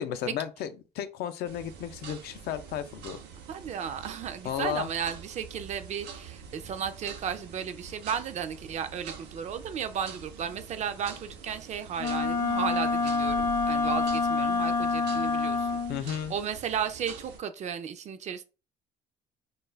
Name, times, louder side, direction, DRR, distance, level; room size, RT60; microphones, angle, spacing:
voice 1, 0.0-3.2 4.4-4.9 15.9-16.3, left 9 dB, 70° left, 0.4 m, -33 dB
sound 1, 1.4-17.4, right 6 dB, 85° right, 0.6 m, -46 dB
voice 2, 3.5-15.8 16.1-18.4, right 8 dB, 45° right, 0.4 m, -34 dB
Wind instrument woodwind instrument, 12.0-16.0, left 4 dB, 20° left, 0.5 m, -27 dB
2.3 x 2.2 x 3.2 m
cardioid pair, 110°, 17 cm